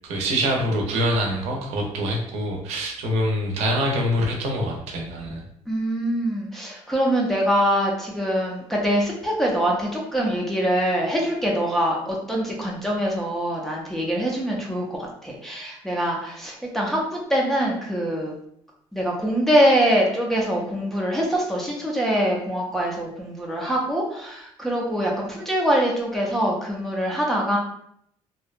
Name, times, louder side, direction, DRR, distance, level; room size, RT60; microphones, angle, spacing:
voice 1, 0.0-5.4, equal, 90° right, 0 dB, 0.6 m, -25 dB
voice 2, 5.7-17.0 17.3-18.3 18.9-27.6, equal, 5° left, -3 dB, 0.4 m, -24 dB
2.6 x 2.1 x 2.4 m, 0.71 s
cardioid pair, 175°, 11 cm